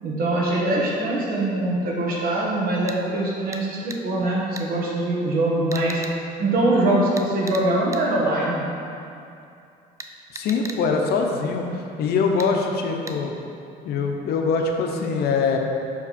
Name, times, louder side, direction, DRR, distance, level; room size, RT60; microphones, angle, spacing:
voice 1, 0.0-6.0 6.4-8.6, right 1 dB, 60° right, -3 dB, 1.5 m, -23 dB
sound 1, 2.9-3.0 3.5-3.6 3.9-4.0 4.6-4.7 5.7-6.2 7.2-7.7 7.9-8.0 10.0-10.8 12.4-12.5 13.1-13.2, right 3 dB, 20° right, 0.4 m, -37 dB
voice 2, 10.3-13.3 13.8-15.6, left 4 dB, 70° left, 3 dB, 0.7 m, -23 dB
6.0 x 4.7 x 4.2 m, 2.6 s
cardioid pair, 110°, 17 cm